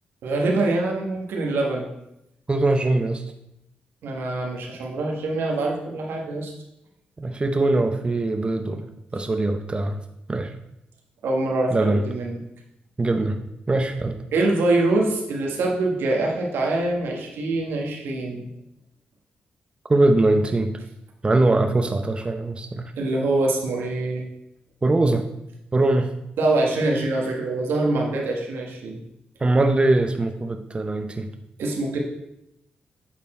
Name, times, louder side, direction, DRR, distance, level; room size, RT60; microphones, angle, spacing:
voice 1, 0.2-1.9 4.0-6.5 11.2-12.4 14.3-18.5 23.0-24.2 26.4-29.0 31.6-32.0, right 2 dB, 85° right, 0 dB, 1.4 m, -24 dB
voice 2, 2.5-3.2 7.2-10.0 10.3-10.5 11.7-12.0 13.0-13.4 13.7-14.2 19.9-20.7 21.2-22.9 24.8-25.3 25.7-26.1 29.4-31.3, right 2 dB, 25° right, 6 dB, 0.6 m, -21 dB
8.3 x 4.3 x 4.3 m, 0.85 s
cardioid pair, 70°, 4 cm